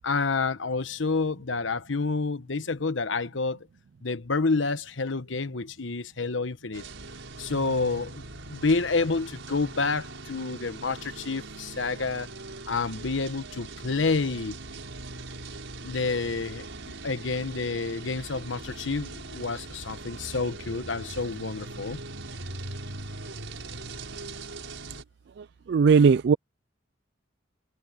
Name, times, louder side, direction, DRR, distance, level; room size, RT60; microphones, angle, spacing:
voice 1, 0.0-3.6 4.0-6.8 7.4-12.3 12.7-14.5 15.8-16.7 17.0-22.0, left 4 dB, 90° left, 1.1 m, -29 dB
sound 1, 6.7-25.0, right 2 dB, 85° right, 5.1 m, -41 dB
voice 2, 25.4-26.3, right 5 dB, 60° right, 0.3 m, -19 dB
head